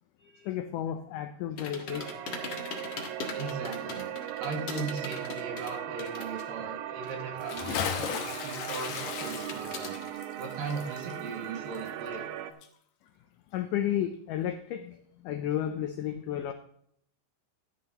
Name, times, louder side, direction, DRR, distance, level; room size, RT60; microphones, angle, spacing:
voice 1, 0.2-2.1 13.5-16.5, left 10 dB, 90° left, 8 dB, 1.8 m, -33 dB
sound 1, 1.6-6.6 6.8-8.4 8.8-10.1, left 3 dB, 50° left, 1.3 m, -41 dB
sound 2, 1.9-12.5, right 11 dB, 80° right, 2.4 m, -38 dB
voice 2, 3.3-4.1 4.4-10.0 10.4-12.3, right 4 dB, 65° right, 1 dB, 3.4 m, -38 dB
Bathtub (filling or washing) / Splash splatter, 7.4-12.4 12.6-12.7, left 8 dB, 70° left, 2.3 m, -36 dB
14.0 x 10.5 x 2.9 m, 0.69 s
omnidirectional pair, 4.5 m